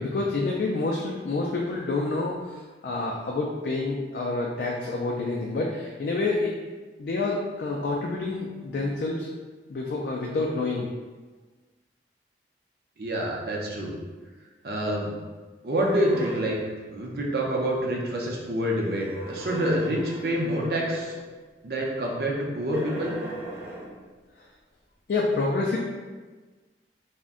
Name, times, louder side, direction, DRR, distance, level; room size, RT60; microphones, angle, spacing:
voice 1, 0.0-6.6 7.0-9.3 9.7-10.9 25.1-25.8, left 3 dB, 60° left, -2 dB, 0.3 m, -28 dB
voice 2, 13.0-13.9 14.6-15.1 15.6-16.6 16.9-21.1 21.6-23.1, right 1 dB, 60° right, -2 dB, 0.5 m, -27 dB
sound 1, 15.7-16.6 18.8-21.3 22.7-24.0, right 1 dB, 10° right, 0.5 m, -38 dB
2.5 x 2.1 x 3.6 m, 1.3 s
head